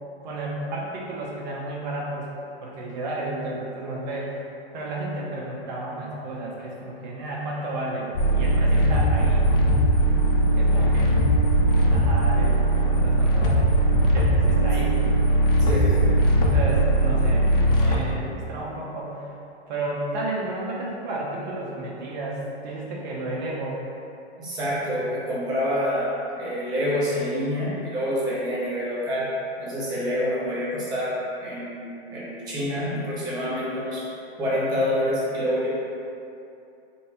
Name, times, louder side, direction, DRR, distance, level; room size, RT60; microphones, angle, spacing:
voice 1, 0.2-2.3 2.6-4.5 4.7-8.1 8.4-9.5 10.5-11.1 11.9-13.7 14.1-15.3 16.4-19.4 19.7-23.8, right 2 dB, 40° right, -4 dB, 0.9 m, -32 dB
sound 1, 8.1-18.0, right 1 dB, 55° left, 0.7 m, -20 dB
voice 2, 15.6-16.0 24.4-29.3 29.6-34.1 34.4-35.7, equal, 10° right, -8 dB, 0.6 m, -27 dB
4.2 x 2.2 x 4.2 m, 2.7 s
hypercardioid pair, 155°, 34 cm